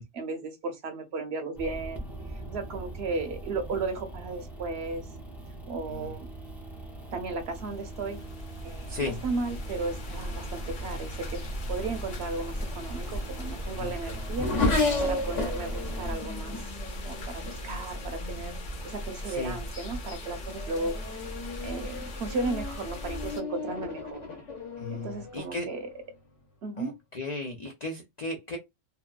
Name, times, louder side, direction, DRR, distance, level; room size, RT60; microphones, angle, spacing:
voice 1, 0.1-2.0 2.5-5.1 5.7-6.3 7.1-8.2 8.6-11.4 11.7-14.5 15.0-16.6 16.8-18.5 18.8-21.0 21.6-24.2 24.9-25.9 26.6-26.9, right 3 dB, 60° right, 0.8 m, -35 dB
sound 1, 1.5-16.2, right 1 dB, 5° right, 0.4 m, -41 dB
sound 2, 7.4-23.4, equal, 50° left, 0.7 m, -38 dB
voice 2, 8.9-9.2 13.7-14.2 19.2-19.6 24.8-25.7 26.8-28.6, left 2 dB, 85° left, 0.3 m, -36 dB
Race car auto racing / Accelerating revving vroom, 12.7-18.6 19.4-19.8 20.2-26.1, left 3 dB, 65° left, 1.2 m, -34 dB
2.8 x 2.3 x 2.3 m
omnidirectional pair, 1.4 m